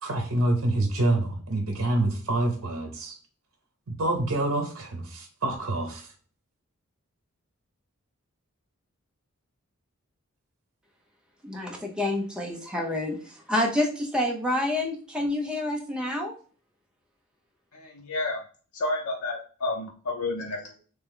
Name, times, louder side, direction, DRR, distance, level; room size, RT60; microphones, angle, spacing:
voice 1, 0.0-3.2 3.9-6.1, right 2 dB, 70° right, 3 dB, 0.7 m, -27 dB
voice 2, 11.4-16.3, left 1 dB, 5° right, 0 dB, 0.6 m, -28 dB
voice 3, 17.7-18.4 18.7-20.7, left 2 dB, 85° left, 0 dB, 0.6 m, -31 dB
3.3 x 2.9 x 3.7 m, 0.40 s
head